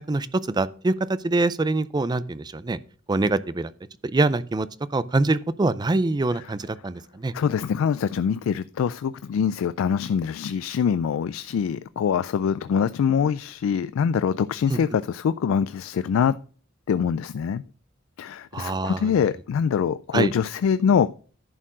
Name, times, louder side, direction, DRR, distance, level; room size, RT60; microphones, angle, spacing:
voice 1, 0.0-2.8 3.1-3.7 4.1-4.7 4.9-7.3 14.7-14.8 18.5-19.1 20.1-20.3, right 2 dB, 20° right, 0.4 m, -24 dB
voice 2, 7.3-16.4 16.9-17.6 18.2-21.1, left 7 dB, 85° left, 0.3 m, -24 dB
11.0 x 4.5 x 6.1 m
head